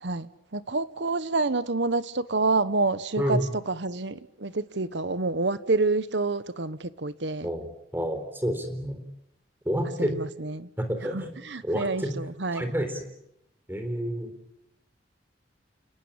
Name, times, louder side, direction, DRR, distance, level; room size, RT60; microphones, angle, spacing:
voice 1, 0.0-7.5 10.0-10.7 11.1-12.7, right 3 dB, 75° right, 1.2 m, -28 dB
voice 2, 3.2-3.5 7.4-9.0 9.7-10.2 10.8-11.3 11.6-12.2 12.5-13.1 13.7-14.3, equal, 10° right, 3.9 m, -29 dB
29.5 x 19.0 x 8.9 m
head